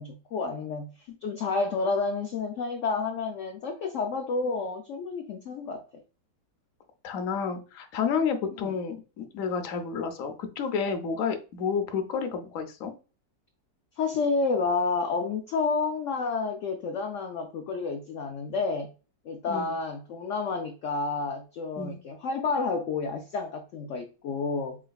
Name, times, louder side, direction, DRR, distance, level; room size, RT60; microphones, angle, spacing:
voice 1, 0.0-6.0 8.6-8.8 14.0-18.9 19.3-24.8, left 4 dB, 85° left, 0.6 m, -30 dB
voice 2, 7.0-12.9 19.5-19.8 21.8-22.0, left 6 dB, 60° left, 1.0 m, -30 dB
4.8 x 3.2 x 2.3 m
omnidirectional pair, 1.9 m